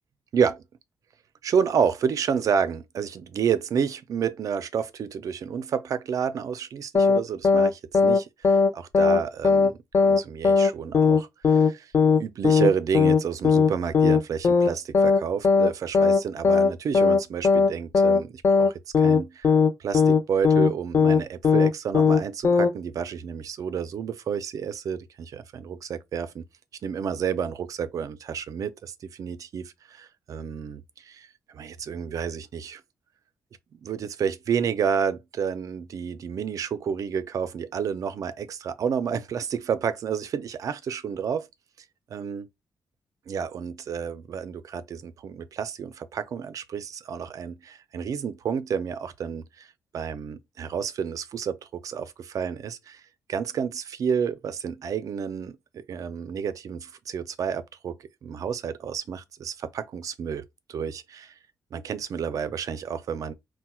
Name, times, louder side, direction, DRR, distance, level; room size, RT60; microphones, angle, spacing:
voice 1, 1.4-11.9 12.2-26.4 26.8-32.8 33.8-41.5 42.1-42.5 43.3-49.7 49.9-51.6 51.8-53.0 53.3-58.0 58.2-60.4 60.7-61.4 61.7-63.3, right 7 dB, 55° right, 0.4 m, -30 dB
sound 1, 6.9-7.2 7.4-7.7 7.9-8.2 8.4-8.7 8.9-9.2 9.4-9.7 9.9-10.2 10.4-10.7 10.9-11.2 11.4-11.7 11.9-12.2 12.4-12.7 12.9-13.2 13.4-13.7 13.9-14.2 14.4-14.7 14.9-15.2 15.4-15.7 15.9-16.2 16.4-16.7 16.9-17.2 17.4-17.7 17.9-18.2 18.4-18.7 18.9-19.2 19.4-19.7 19.9-20.2 20.4-20.7 20.9-21.2 21.4-21.7 21.9-22.2 22.4-22.7, left 5 dB, 35° left, 0.4 m, -18 dB
4.2 x 2.1 x 2.2 m
wide cardioid pair, 145°, 7 cm